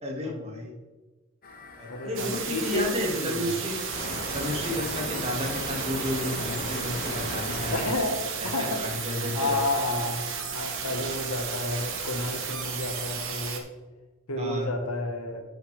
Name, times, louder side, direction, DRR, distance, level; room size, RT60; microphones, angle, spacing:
voice 1, 0.0-0.7 1.8-3.8 4.3-7.7 8.4-9.5 14.4-14.7, left 1 dB, 30° right, -1 dB, 2.0 m, -32 dB
sound 1, 1.4-13.5, left 1 dB, 40° left, 1.2 m, -39 dB
voice 2, 1.9-3.6 7.7-8.8 9.3-10.2 10.5-13.7 14.3-15.4, left 2 dB, 80° left, 4 dB, 1.4 m, -31 dB
sound 2, 2.1-13.6, right 7 dB, 60° right, 1.2 m, -34 dB
13.5 x 5.9 x 3.4 m, 1.2 s
head